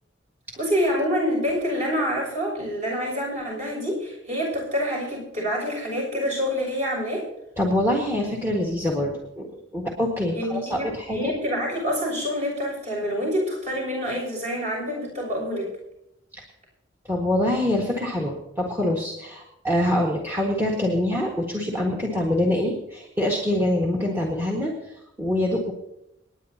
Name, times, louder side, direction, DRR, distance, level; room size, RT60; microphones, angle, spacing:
voice 1, 0.5-7.2 10.3-15.7, equal, 40° right, -2 dB, 6.8 m, -27 dB
voice 2, 7.6-9.5 9.7-11.3 16.3-16.4 17.0-25.7, left 1 dB, 10° right, -1 dB, 1.7 m, -25 dB
29.0 x 9.9 x 2.9 m, 0.82 s
head